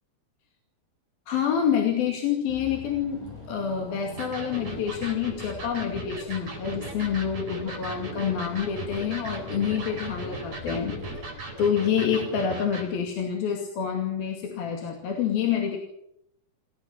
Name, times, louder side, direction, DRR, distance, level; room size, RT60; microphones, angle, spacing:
voice 1, 1.3-11.3 11.6-15.8, left 8 dB, 70° left, 2 dB, 4.2 m, -27 dB
Car / Engine, 2.5-11.7, left 3 dB, 50° left, 7.6 m, -44 dB
Electric guitar, 4.2-12.9, right 2 dB, 45° right, 8.4 m, -37 dB
28.0 x 15.5 x 7.2 m, 0.76 s
omnidirectional pair, 4.5 m